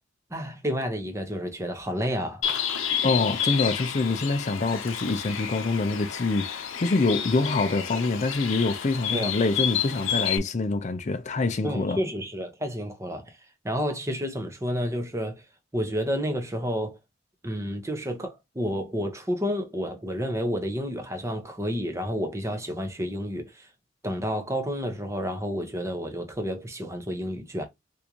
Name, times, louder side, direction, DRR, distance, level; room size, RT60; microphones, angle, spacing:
voice 1, 0.3-2.4 9.1-9.3 11.6-13.4 13.6-15.4 15.7-17.0 17.4-23.7 24.0-27.6, equal, 15° right, 0.8 m, -30 dB
Bird, 2.4-10.4, left 8 dB, 80° left, 0.7 m, -30 dB
voice 2, 3.0-12.0, left 3 dB, 35° left, 0.5 m, -25 dB
3.6 x 2.6 x 2.9 m
head